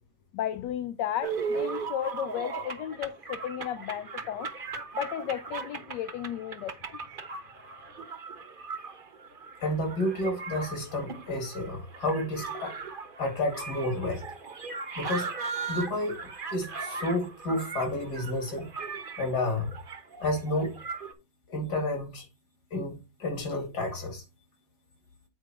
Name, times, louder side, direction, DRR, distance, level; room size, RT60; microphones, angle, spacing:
voice 1, 0.3-4.5 4.9-6.8, left 10 dB, 85° left, 1.3 m, -34 dB
sound 1, 1.2-21.1, right 5 dB, 35° right, 1.0 m, -38 dB
voice 2, 9.6-12.8 13.2-14.2 15.0-15.4 15.7-16.2 16.5-18.7 19.2-19.7 20.2-20.8 21.5-22.3 22.7-24.2, left 1 dB, 65° left, 2.7 m, -30 dB
8.2 x 4.8 x 4.3 m
omnidirectional pair, 1.9 m